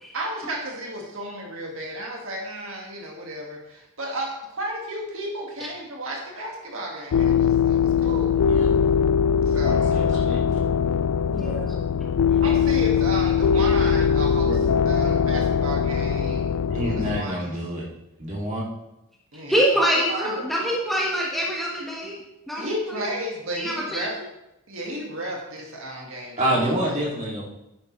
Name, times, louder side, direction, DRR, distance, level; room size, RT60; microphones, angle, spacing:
voice 1, 0.1-8.4 9.5-10.0 12.4-14.6 14.9-17.6 19.3-20.4 22.6-24.1 24.7-26.9, right 1 dB, 65° right, 0 dB, 1.9 m, -33 dB
sound 1, 7.1-17.2, left 7 dB, 85° left, 0.4 m, -21 dB
voice 2, 8.5-8.8 9.9-10.4 14.4-14.5 16.7-17.9 18.2-18.6 26.4-27.4, right 1 dB, 30° right, -4 dB, 2.6 m, -27 dB
voice 3, 11.3-11.7 19.5-22.2 22.5-23.0 23.6-24.1, equal, ahead, -4 dB, 1.4 m, -25 dB
10.5 x 9.9 x 3.2 m, 0.88 s
head